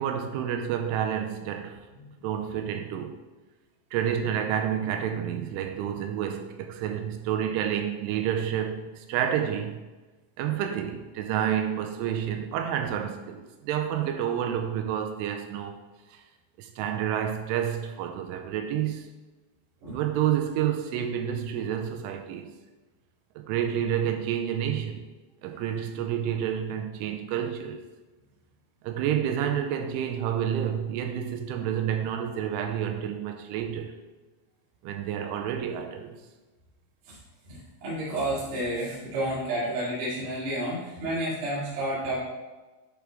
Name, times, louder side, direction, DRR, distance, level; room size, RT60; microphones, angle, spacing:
voice 1, 0.0-1.8 2.2-3.2 3.9-9.8 10.4-15.8 16.1-16.2 16.6-19.1 19.9-22.5 23.4-25.0 25.4-27.9 28.8-34.0 34.8-36.2, right 9 dB, 85° right, 3.0 m, -29 dB
voice 2, 37.5-42.2, right 1 dB, 55° right, 3.8 m, -30 dB
10.5 x 4.8 x 3.7 m
omnidirectional pair, 5.7 m